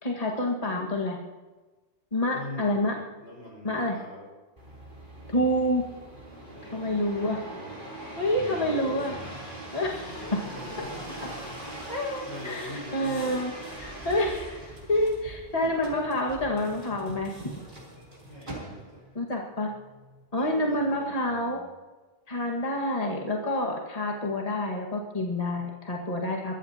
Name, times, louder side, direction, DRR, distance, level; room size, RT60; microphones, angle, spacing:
voice 1, 0.0-1.2 2.1-3.0 3.6-4.0 5.3-5.8 6.7-7.4 8.2-9.1 9.7-10.4 11.9-13.5 13.8-17.3 19.1-19.7 20.3-21.6 22.3-26.6, left 1 dB, 35° left, -1 dB, 1.9 m, -28 dB
voice 2, 2.3-2.9 3.2-4.3 6.5-7.7 8.4-9.4 9.8-11.4 12.2-13.4 18.2-19.0 20.3-21.6, left 1 dB, 90° left, -2 dB, 5.5 m, -42 dB
sound 1, 4.6-19.1 19.7-20.2, right 1 dB, 50° right, 3.8 m, -42 dB
22.5 x 14.5 x 2.9 m, 1.2 s
omnidirectional pair, 1.1 m